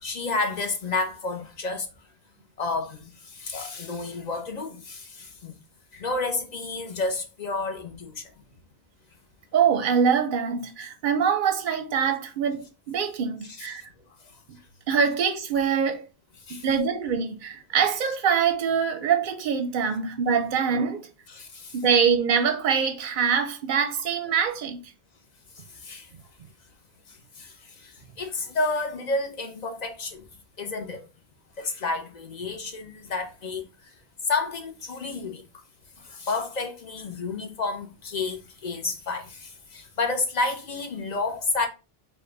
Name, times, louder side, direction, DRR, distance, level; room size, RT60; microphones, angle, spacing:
voice 1, 0.0-1.9 2.6-5.6 5.9-8.2 13.6-13.7 16.5-16.7 21.3-21.7 25.8-26.1 27.4-27.5 27.8-30.2 30.6-31.1 31.6-33.7 34.3-35.4 36.1-41.7, left 3 dB, 45° left, 0.9 m, -30 dB
voice 2, 9.5-13.8 14.9-16.1 16.5-21.1 21.7-24.8, right 7 dB, 60° right, 0.6 m, -24 dB
5.3 x 2.3 x 3.8 m
omnidirectional pair, 1.0 m